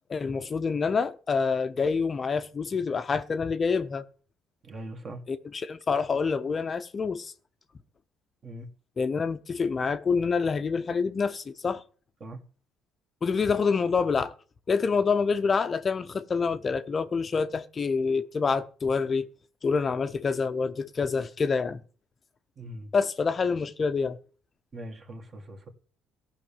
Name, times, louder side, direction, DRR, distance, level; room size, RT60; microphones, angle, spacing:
voice 1, 0.1-4.1 5.3-7.3 9.0-11.8 13.2-14.3 14.7-19.3 19.6-21.8 22.9-24.2, left 5 dB, 30° left, 0.7 m, -27 dB
voice 2, 4.6-5.2 8.4-8.7 12.2-12.4 22.6-22.9 24.7-25.7, right 1 dB, 35° right, 2.0 m, -41 dB
15.0 x 5.8 x 7.2 m
cardioid pair, 115°, 0 cm